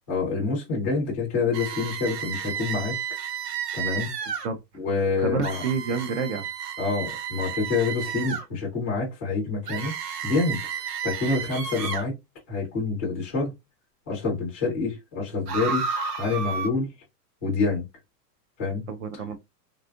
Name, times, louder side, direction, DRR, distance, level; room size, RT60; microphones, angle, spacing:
voice 1, 0.1-3.0 3.7-4.1 4.7-5.6 6.8-9.9 10.2-10.6 11.0-12.1 12.5-13.5 14.1-15.8 16.2-16.9 17.4-17.9 18.6-18.8 19.1-19.2, left 4 dB, 10° left, 0.4 m, -27 dB
sound 1, 1.5-4.5 5.4-8.4 9.7-12.1 15.5-16.7, right 7 dB, 75° right, 1.2 m, -32 dB
voice 2, 5.2-6.5 18.9-19.4, right 5 dB, 45° right, 0.5 m, -28 dB
3.6 x 2.3 x 2.4 m
supercardioid pair, 170°, 49 cm